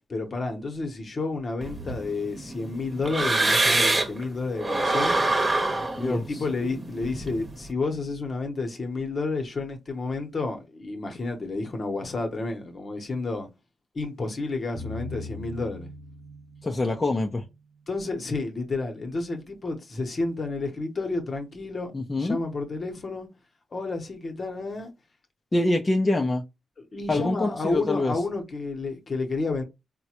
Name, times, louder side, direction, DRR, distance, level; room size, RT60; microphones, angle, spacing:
voice 1, 0.1-5.2 6.0-13.5 13.9-15.9 17.9-21.9 22.2-23.3 23.7-24.9 26.8-29.6, left 3 dB, 55° left, 1.0 m, -30 dB
sound 1, 1.6-4.2 4.6-7.6, right 2 dB, 40° right, 0.9 m, -25 dB
sound 2, 14.7-17.9, left 2 dB, 85° right, 0.6 m, -41 dB
voice 2, 16.6-17.4 21.9-22.4 25.5-26.4 27.1-28.1, left 2 dB, 30° left, 0.6 m, -25 dB
3.8 x 2.2 x 2.9 m
cardioid pair, 50°, 0 cm